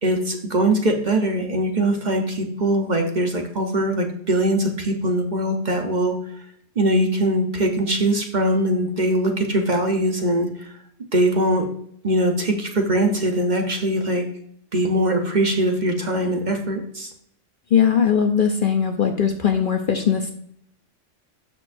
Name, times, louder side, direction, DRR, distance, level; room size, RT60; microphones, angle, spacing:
voice 1, 0.0-6.2 6.8-10.7 11.1-11.7 12.0-14.3 14.7-17.1, right 1 dB, 40° right, 3 dB, 1.1 m, -21 dB
voice 2, 17.7-20.3, left 7 dB, 50° left, 5 dB, 0.8 m, -19 dB
12.5 x 6.2 x 2.6 m, 0.68 s
omnidirectional pair, 1.3 m